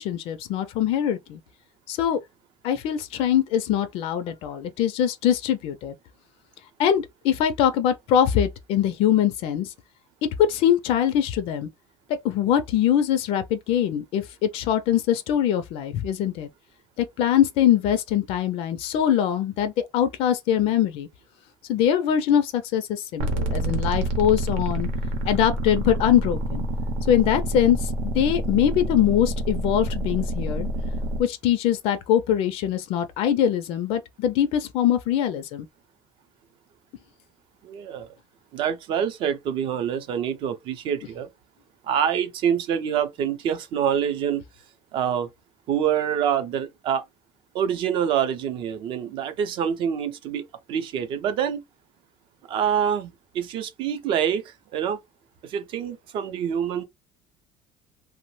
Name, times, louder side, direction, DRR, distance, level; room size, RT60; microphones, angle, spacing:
voice 1, 0.0-1.4 1.9-2.2 2.6-5.9 6.8-9.7 10.2-11.7 12.1-16.5 17.0-21.1 21.7-24.9 25.2-26.6 27.1-30.7 31.2-35.7, left 10 dB, 60° left, 0.4 m, -23 dB
sound 1, 23.2-31.2, right 1 dB, 90° right, 0.8 m, -27 dB
voice 2, 37.6-38.1 38.5-41.3 41.8-44.4 44.9-45.3 45.7-47.0 47.5-51.6 52.5-55.0 55.4-56.8, right 8 dB, 50° right, 0.5 m, -26 dB
2.9 x 2.0 x 3.0 m
cardioid pair, 165°, 11 cm